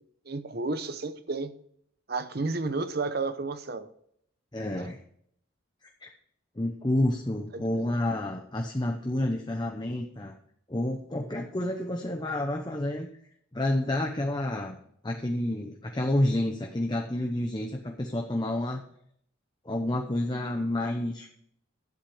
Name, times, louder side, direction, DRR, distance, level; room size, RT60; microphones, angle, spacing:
voice 1, 0.0-1.6 2.1-3.9 4.8-4.9 7.5-7.9, right 3 dB, 50° right, 0.8 m, -32 dB
voice 2, 4.5-5.0 6.0-6.1 6.6-10.4 10.7-13.1 13.5-14.8 15.0-18.8 19.6-21.3, left 1 dB, 20° left, 0.8 m, -29 dB
12.0 x 8.0 x 5.0 m
head